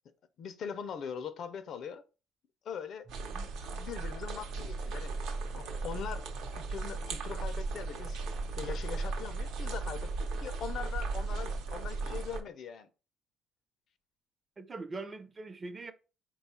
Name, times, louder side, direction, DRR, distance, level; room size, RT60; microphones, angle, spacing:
voice 1, 0.4-2.0 2.6-3.1 3.7-5.1 5.5-6.3 6.5-8.2 8.6-12.9, left 7 dB, 55° left, 0.4 m, -41 dB
voice 2, 3.1-3.5 14.6-15.9, right 3 dB, 25° right, 0.4 m, -43 dB
sound 1, 3.1-12.4, right 3 dB, 75° right, 0.7 m, -36 dB
4.3 x 2.3 x 4.1 m
cardioid pair, 140°, 0 cm